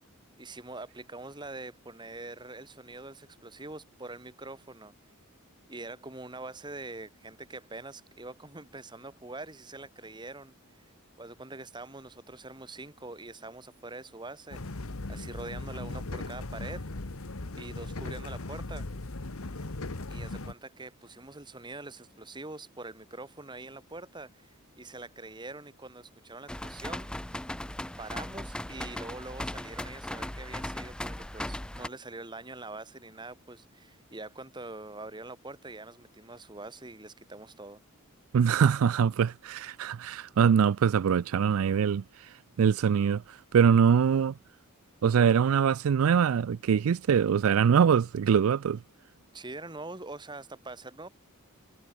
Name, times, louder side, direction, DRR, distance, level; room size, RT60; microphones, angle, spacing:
voice 1, 0.4-4.9 5.7-10.8 11.2-14.6 15.1-16.9 17.6-18.9 20.1-27.1 28.0-37.8 49.3-51.1, right 2 dB, 20° right, 2.0 m, -44 dB
sound 1, 14.5-20.5, left 2 dB, 75° left, 1.4 m, -38 dB
sound 2, 26.5-31.9, left 1 dB, 5° left, 0.4 m, -38 dB
voice 2, 38.3-42.3 42.6-44.3 45.0-48.8, right 7 dB, 75° right, 0.4 m, -23 dB
head